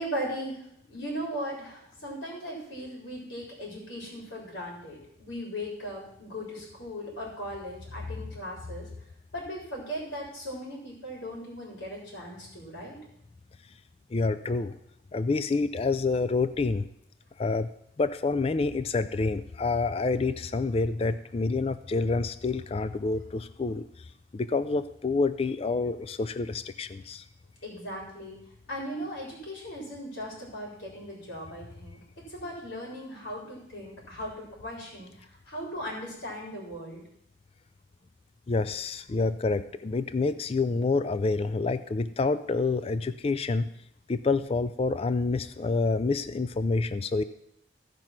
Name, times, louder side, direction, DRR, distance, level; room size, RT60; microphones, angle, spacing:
voice 1, 0.0-8.9 9.3-13.0 27.6-28.4 28.7-34.3 34.6-35.1 35.5-37.0, equal, 65° left, -3 dB, 3.9 m, -38 dB
voice 2, 14.1-14.7 15.1-16.8 17.4-17.7 18.0-23.8 24.3-27.2 38.5-43.7 44.1-47.2, left 3 dB, 30° left, 12 dB, 0.3 m, -28 dB
15.5 x 5.4 x 5.9 m, 0.76 s
head